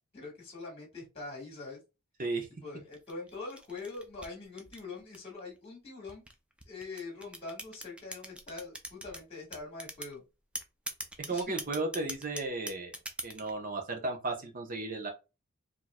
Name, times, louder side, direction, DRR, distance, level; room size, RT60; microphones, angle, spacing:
voice 1, 0.1-1.8 2.6-6.2 6.7-10.2 11.3-11.6, left 3 dB, 30° left, -1 dB, 1.8 m, -43 dB
sound 1, 2.9-5.4 6.1-9.2 9.5-10.1 10.6-13.5, right 1 dB, 5° right, 0.5 m, -41 dB
voice 2, 11.3-12.9 13.2-15.1, right 3 dB, 40° right, 2 dB, 1.1 m, -34 dB
4.5 x 2.9 x 2.3 m, 0.28 s
head